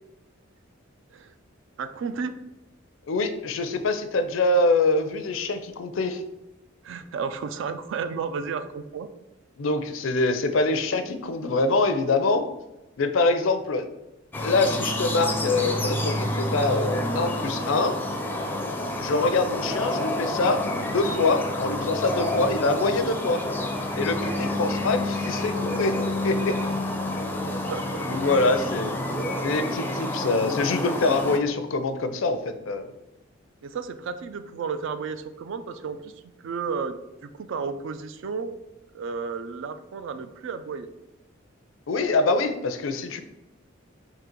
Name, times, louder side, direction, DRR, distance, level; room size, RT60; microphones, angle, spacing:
voice 1, 1.8-2.4 6.8-9.1 24.3-24.7 27.7-28.1 33.6-38.6 38.9-40.9, right 5 dB, 65° right, 10 dB, 0.4 m, -33 dB
voice 2, 3.1-6.2 9.6-12.5 13.0-13.9 14.4-18.0 19.0-23.4 24.0-26.0 26.2-26.6 28.1-28.9 29.4-32.9 41.9-43.2, left 3 dB, 75° left, 9 dB, 0.5 m, -24 dB
sound 1, 14.3-31.4, left 1 dB, 10° left, 0.4 m, -28 dB
3.8 x 2.8 x 4.4 m, 0.95 s
head